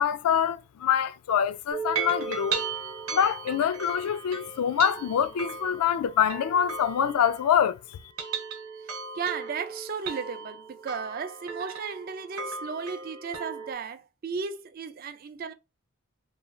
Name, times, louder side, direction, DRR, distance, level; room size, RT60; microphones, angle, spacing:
voice 1, 0.0-2.6 3.1-8.0, left 8 dB, 90° left, 0.3 m, -25 dB
sound 1, 1.7-7.7 8.0-13.7, right 5 dB, 80° right, 0.8 m, -36 dB
voice 2, 8.8-15.5, right 5 dB, 40° right, 0.3 m, -35 dB
3.0 x 2.5 x 2.3 m
head